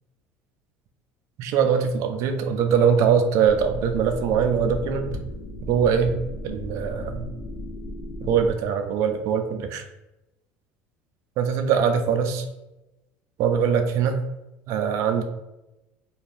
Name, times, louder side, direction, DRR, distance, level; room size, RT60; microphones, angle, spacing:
voice 1, 1.4-5.2 5.7-6.1 6.4-7.3 8.2-9.8 11.4-12.4 13.4-14.2 14.7-15.2, right 7 dB, 65° right, 7 dB, 0.4 m, -22 dB
sound 1, 3.4-8.5, left 1 dB, 60° left, 0.8 m, -35 dB
2.5 x 2.3 x 3.3 m, 0.96 s
supercardioid pair, 95°, 6 cm